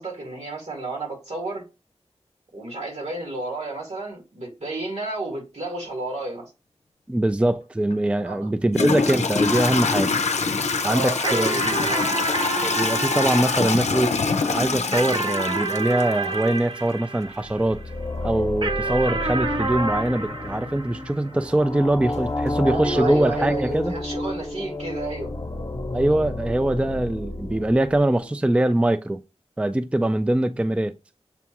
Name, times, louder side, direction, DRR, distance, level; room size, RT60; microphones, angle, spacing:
voice 1, 0.0-1.6 2.5-6.4 8.2-8.5 10.8-12.1 22.6-25.3, right 2 dB, 75° right, 1.9 m, -31 dB
voice 2, 7.1-10.1 10.8-11.7 12.6-14.1 14.5-17.8 18.2-23.9 25.9-29.2 29.6-30.9, right 1 dB, 10° right, 0.3 m, -23 dB
Toilet flush / Trickle dribble, 7.9-8.0 8.7-16.5, left 4 dB, 85° left, 0.5 m, -24 dB
sound 1, 11.2-17.9 18.6-21.4, right 3 dB, 45° right, 0.7 m, -29 dB
sound 2, 17.3-28.5, left 2 dB, 35° left, 0.8 m, -31 dB
6.9 x 2.4 x 2.9 m
wide cardioid pair, 50°, 11 cm